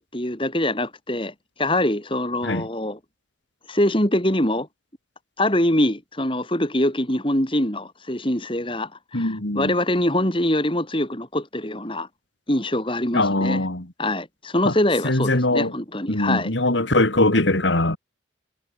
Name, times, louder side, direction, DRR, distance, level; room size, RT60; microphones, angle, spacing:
voice 1, 0.0-3.0 3.7-4.7 5.4-12.1 12.5-13.6 14.0-16.5, left 1 dB, 25° left, 3.8 m, -24 dB
voice 2, 9.1-9.7 13.1-13.8 14.6-14.7 15.0-15.7 16.1-18.0, left 2 dB, 70° left, 2.9 m, -21 dB
head